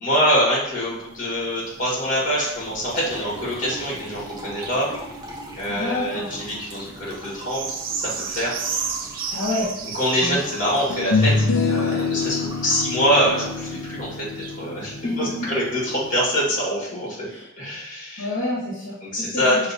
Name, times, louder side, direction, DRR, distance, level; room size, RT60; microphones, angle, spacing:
voice 1, 0.0-4.9 5.6-7.8 8.2-8.5 9.9-17.3 17.6-18.3 19.0-19.7, equal, 40° left, -5 dB, 1.5 m, -24 dB
sound 1, 0.6-16.4 17.1-17.2, right 5 dB, 45° right, 0.4 m, -37 dB
Liquid, 2.5-14.4, right 1 dB, 20° right, 0.7 m, -41 dB
voice 2, 5.7-6.3 9.3-9.7 10.2-10.5 14.8-15.5 17.2-17.5 18.2-19.7, left 2 dB, 65° left, -6 dB, 1.1 m, -29 dB
sound 2, 9.8-9.9 10.9-16.2, left 4 dB, 85° left, 0.5 m, -26 dB
5.0 x 2.9 x 2.6 m, 0.81 s
head